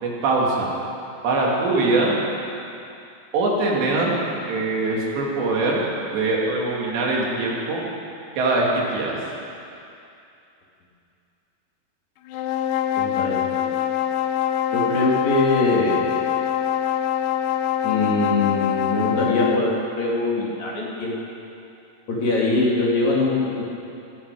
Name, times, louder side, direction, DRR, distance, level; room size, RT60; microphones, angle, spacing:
voice 1, 0.0-0.7 1.2-2.2 3.3-4.1 4.5-5.8 6.1-7.8 8.4-9.2, right 2 dB, 85° right, -3 dB, 4.6 m, -22 dB
sound 1, 12.3-19.7, left 9 dB, 80° left, 2.6 m, -24 dB
voice 2, 13.0-13.7 14.7-16.1 17.8-21.1 22.1-23.6, left 2 dB, 45° left, -5 dB, 3.5 m, -22 dB
19.0 x 15.5 x 4.9 m, 2.6 s
omnidirectional pair, 4.8 m